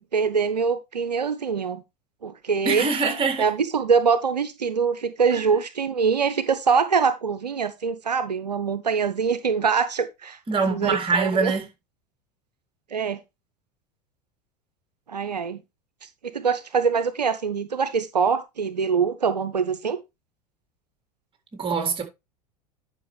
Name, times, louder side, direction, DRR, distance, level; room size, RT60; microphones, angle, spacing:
voice 1, 0.1-1.8 2.2-2.9 3.4-10.4 10.7-11.5 12.9-13.2 15.1-15.6 16.0-16.1 16.3-20.0, right 6 dB, 90° right, 0.7 m, -24 dB
voice 2, 2.6-3.5 5.3-5.4 10.5-11.7 21.5-22.0, right 4 dB, 25° right, 3.6 m, -24 dB
11.0 x 5.8 x 3.3 m
hypercardioid pair, 80°, 20 cm